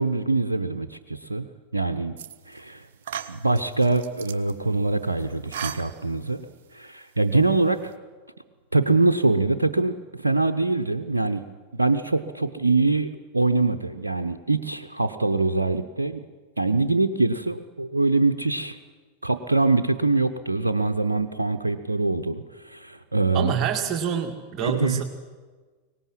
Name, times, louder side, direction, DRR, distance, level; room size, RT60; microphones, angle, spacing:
voice 1, 0.0-1.4 1.7-2.1 2.5-2.9 3.3-6.4 6.7-7.8 8.7-11.4 11.7-16.2 16.6-18.8 19.2-23.5 24.6-25.0, right 3 dB, 80° right, 6 dB, 0.9 m, -24 dB
sound 1, 2.2-2.6 3.0-4.5 5.2-6.4, right 9 dB, 55° right, 1.1 m, -37 dB
voice 2, 23.3-25.0, right 8 dB, 35° right, 4 dB, 2.0 m, -26 dB
23.5 x 19.0 x 7.6 m, 1.4 s
figure-of-eight pair, 90°, 0 cm